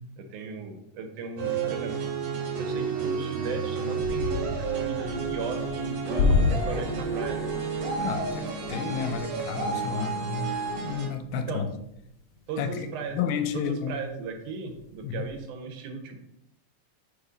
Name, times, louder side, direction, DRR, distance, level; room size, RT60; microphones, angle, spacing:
voice 1, 0.2-1.9 2.6-7.4 11.5-11.7 12.5-13.2 13.5-16.2, right 4 dB, 75° right, 5 dB, 2.2 m, -37 dB
sound 1, 1.4-11.1, right 5 dB, 60° right, 2.3 m, -31 dB
sound 2, 4.0-13.7 14.1-14.3 14.7-15.4, left 4 dB, 60° left, 1.6 m, -32 dB
voice 2, 8.0-11.7 12.6-12.9 13.1-14.0 15.0-15.3, left 6 dB, 85° left, 8 dB, 2.2 m, -31 dB
5.0 x 4.0 x 5.0 m, 0.79 s
omnidirectional pair, 3.8 m